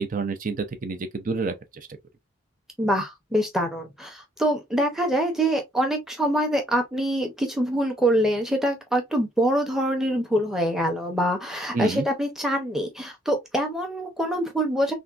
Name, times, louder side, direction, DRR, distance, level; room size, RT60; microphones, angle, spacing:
voice 1, 0.0-1.9 11.7-12.1, right 4 dB, 40° right, 0.5 m, -29 dB
voice 2, 2.8-14.9, equal, ahead, 0.7 m, -25 dB
3.5 x 2.2 x 2.4 m
head